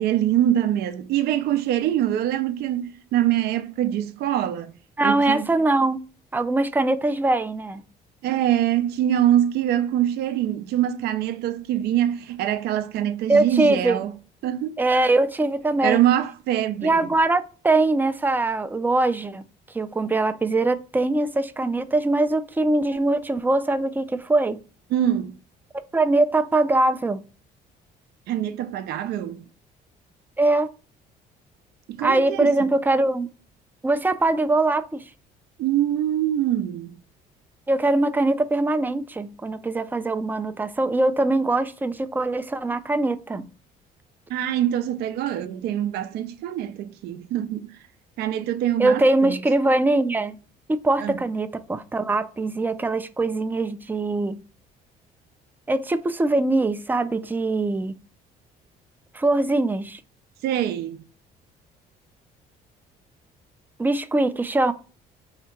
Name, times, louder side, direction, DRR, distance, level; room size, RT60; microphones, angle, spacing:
voice 1, 0.0-4.8 5.0-5.5 8.2-14.1 14.4-15.1 15.8-17.1 24.9-25.4 28.3-29.5 31.9-32.5 35.6-37.0 44.3-47.8 48.2-49.4 51.0-51.2 60.4-61.0, right 11 dB, 75° right, 0.5 m, -24 dB
voice 2, 5.0-6.0 6.3-7.8 13.3-14.0 14.8-16.0 16.8-19.4 19.7-24.6 25.9-27.2 30.4-30.7 32.0-33.3 33.8-35.0 37.7-43.5 48.8-50.4 50.7-54.4 55.7-57.9 59.1-60.0 63.8-64.7, right 2 dB, 10° right, 0.3 m, -22 dB
3.4 x 2.8 x 4.4 m
cardioid pair, 110°, 17 cm